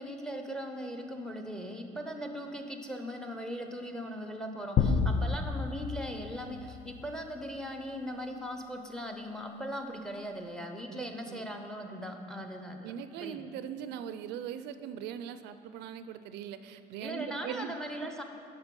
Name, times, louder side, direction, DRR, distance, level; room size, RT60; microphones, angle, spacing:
voice 1, 0.0-12.9 13.2-13.4 17.0-18.2, equal, 5° left, 4 dB, 0.8 m, -39 dB
sound 1, 4.8-7.3, left 5 dB, 50° left, 0.5 m, -30 dB
voice 2, 4.8-5.2 10.9-11.4 12.8-18.1, right 9 dB, 85° right, 11 dB, 0.4 m, -41 dB
8.0 x 5.7 x 5.3 m, 2.6 s
cardioid pair, 110°, 17 cm